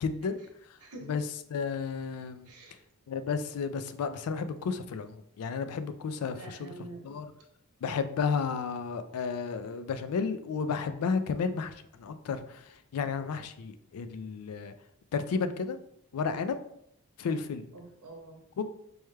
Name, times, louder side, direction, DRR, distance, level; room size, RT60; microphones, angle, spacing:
voice 1, 0.0-0.4 1.1-1.2 1.5-2.5 3.1-6.7 7.0-7.3 7.8-11.7 12.0-12.6 12.9-14.7 15.1-15.8 16.1-16.6 17.2-17.6 18.6-18.7, left 5 dB, 75° left, 10 dB, 0.3 m, -32 dB
voice 2, 0.8-1.2 2.4-2.8 6.3-7.2 17.7-18.4, right 2 dB, 85° right, 1 dB, 0.9 m, -46 dB
4.6 x 2.2 x 3.2 m, 0.76 s
head